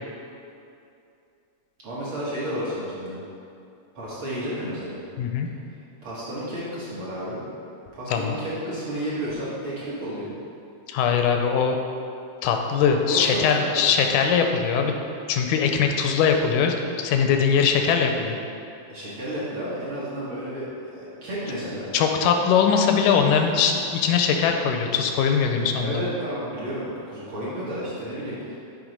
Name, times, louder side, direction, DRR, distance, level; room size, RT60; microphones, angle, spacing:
voice 1, 1.8-3.2 3.9-5.0 6.0-7.4 7.9-10.3 13.0-13.8 18.9-20.7 20.9-21.9 25.8-28.6, equal, 50° right, -9 dB, 1.8 m, -31 dB
voice 2, 5.2-5.5 8.1-8.3 10.9-11.8 12.4-14.9 15.3-18.4 21.9-26.0, left 6 dB, 85° left, 4 dB, 2.1 m, -21 dB
7.9 x 3.5 x 5.1 m, 2.6 s
omnidirectional pair, 3.6 m